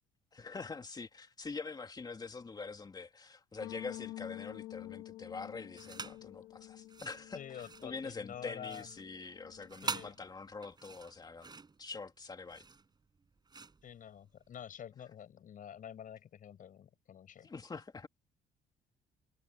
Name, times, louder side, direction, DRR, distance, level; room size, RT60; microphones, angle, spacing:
voice 1, 0.3-11.5 11.8-12.7 17.4-18.1, left 4 dB, 25° left, 2.8 m, -45 dB
sound 1, 3.6-9.8, left 16 dB, 90° left, 2.0 m, -49 dB
sound 2, 5.7-6.3 6.8-14.6, right 4 dB, 25° right, 5.9 m, -45 dB
voice 2, 7.3-8.9 9.8-10.1 13.8-17.5, left 9 dB, 50° left, 6.1 m, -48 dB
cardioid pair, 110°, 17 cm